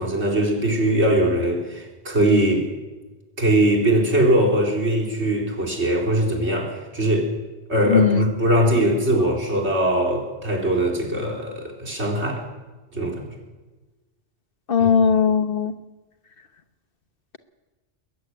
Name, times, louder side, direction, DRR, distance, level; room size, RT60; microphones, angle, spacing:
voice 1, 0.0-2.7 3.4-7.3 7.7-12.4 12.9-13.3, right 1 dB, 85° right, 0 dB, 4.2 m, -21 dB
voice 2, 7.8-8.3 14.7-15.7, left 6 dB, 55° left, 10 dB, 1.3 m, -18 dB
21.5 x 14.0 x 9.4 m, 1.2 s
omnidirectional pair, 1.1 m